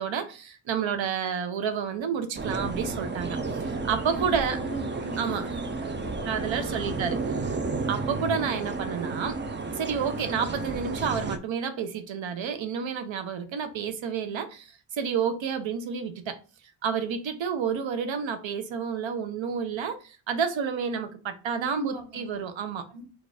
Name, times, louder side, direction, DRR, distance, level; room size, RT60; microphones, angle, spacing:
voice 1, 0.0-4.6 5.2-5.5 6.3-7.6 7.9-9.4 9.7-16.4 16.8-22.9, right 6 dB, 65° right, 0.8 m, -30 dB
sound 1, 2.3-11.4, right 3 dB, 25° right, 0.4 m, -32 dB
voice 2, 4.1-6.1 6.5-6.9 21.5-22.4 22.9-23.0, right 1 dB, 50° right, 1.7 m, -41 dB
4.4 x 2.4 x 4.7 m
wide cardioid pair, 120°, 49 cm